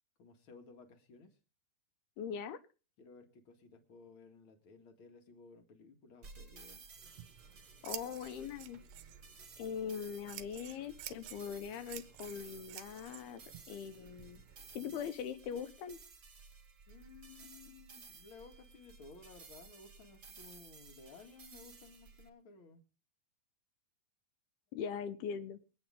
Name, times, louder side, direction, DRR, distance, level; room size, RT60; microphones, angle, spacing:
voice 1, 0.2-1.4 3.0-6.8 16.9-22.8, left 4 dB, 50° left, 7 dB, 1.6 m, -57 dB
voice 2, 2.2-2.6 7.8-8.8 9.6-14.4 14.7-16.0 24.7-25.6, left 7 dB, 75° left, 11 dB, 2.7 m, -41 dB
sound 1, 6.2-22.3, right 4 dB, 30° right, 1.9 m, -56 dB
Scissors, 7.0-15.1, right 12 dB, 75° right, 2.0 m, -52 dB
24.0 x 9.4 x 3.6 m, 0.34 s
omnidirectional pair, 4.9 m